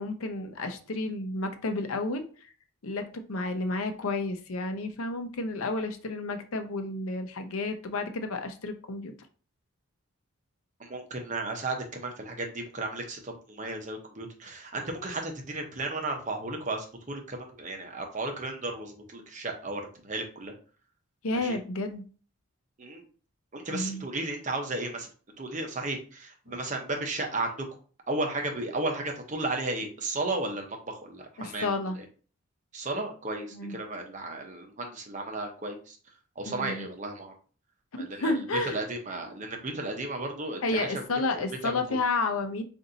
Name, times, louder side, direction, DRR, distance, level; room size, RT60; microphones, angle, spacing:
voice 1, 0.0-2.3 2.8-9.1 21.2-22.0 23.7-24.0 31.4-32.0 33.5-33.8 36.5-36.9 37.9-38.8 40.6-42.6, left 2 dB, 80° left, 7 dB, 0.6 m, -31 dB
voice 2, 10.8-20.5 21.4-21.6 22.8-23.0 23.5-25.1 25.4-27.7 28.1-31.7 32.7-36.0 36.4-37.3 38.0-41.0 41.3-41.7, right 2 dB, 35° right, 3 dB, 0.7 m, -34 dB
4.0 x 2.6 x 3.9 m, 0.39 s
head